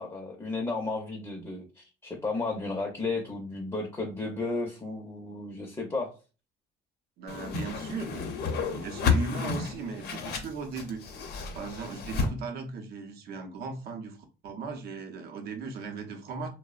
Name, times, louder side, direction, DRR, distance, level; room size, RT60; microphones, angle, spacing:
voice 1, 0.0-6.1, left 3 dB, 20° left, 0.5 m, -33 dB
voice 2, 7.2-11.0 11.5-16.5, right 4 dB, 70° right, 0.6 m, -38 dB
Whoosh swoosh swish, 7.3-12.3, left 5 dB, 70° left, 0.6 m, -31 dB
2.6 x 2.0 x 2.3 m
cardioid pair, 110°, 17 cm